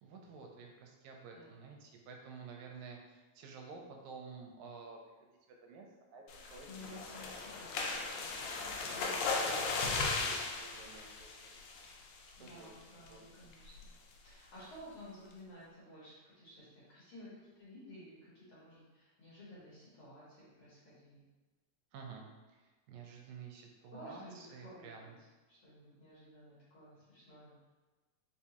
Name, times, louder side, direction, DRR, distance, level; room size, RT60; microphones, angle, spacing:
voice 1, 0.0-6.2 6.5-7.6 7.9-8.1 8.8-11.6 12.4-12.8 13.1-13.3 21.9-25.2, right 4 dB, 85° right, 1 dB, 1.9 m, -52 dB
sound 1, 6.3-12.1 12.5-12.7 13.1-13.2 13.5-13.8, left 4 dB, 90° left, 2.0 m, -37 dB
voice 2, 6.6-10.0 12.4-13.9 14.2-21.2 24.0-25.1 25.5-27.5, left 1 dB, 60° left, -9 dB, 1.6 m, -54 dB
4.6 x 2.2 x 2.8 m, 1.2 s
omnidirectional pair, 3.3 m